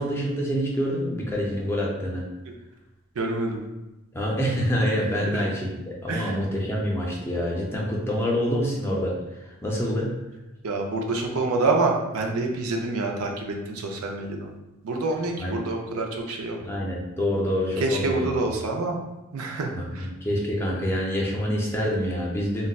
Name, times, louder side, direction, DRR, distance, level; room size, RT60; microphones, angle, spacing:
voice 1, 0.0-2.2 4.1-10.2 15.4-15.6 16.6-18.3 19.7-22.7, equal, 10° left, -3 dB, 0.4 m, -26 dB
voice 2, 3.2-3.7 5.3-5.4 6.1-6.4 10.6-14.5 14.8-16.6 17.8-19.0 19.3-20.1, right 3 dB, 85° right, 2 dB, 0.5 m, -27 dB
3.8 x 2.1 x 2.3 m, 1.0 s
head